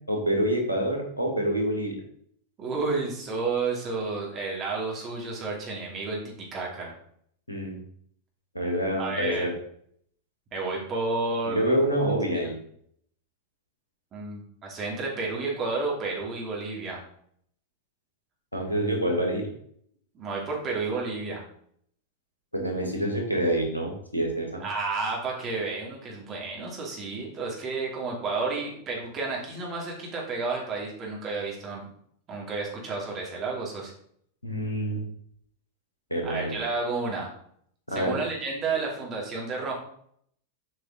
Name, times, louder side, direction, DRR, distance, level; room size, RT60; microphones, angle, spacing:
voice 1, 0.1-2.0 7.5-7.8 8.5-9.5 11.5-12.6 18.5-19.4 22.5-24.6 34.4-35.0 36.1-36.5 37.9-38.2, right 1 dB, 85° left, 1 dB, 2.1 m, -27 dB
voice 2, 2.6-6.9 9.0-9.5 10.5-11.8 14.1-17.0 20.1-21.4 24.6-31.9 32.3-33.9 36.2-37.3 37.9-39.7, right 3 dB, 30° right, -2 dB, 2.7 m, -31 dB
7.9 x 5.2 x 3.9 m, 0.66 s
figure-of-eight pair, 90°, 0 cm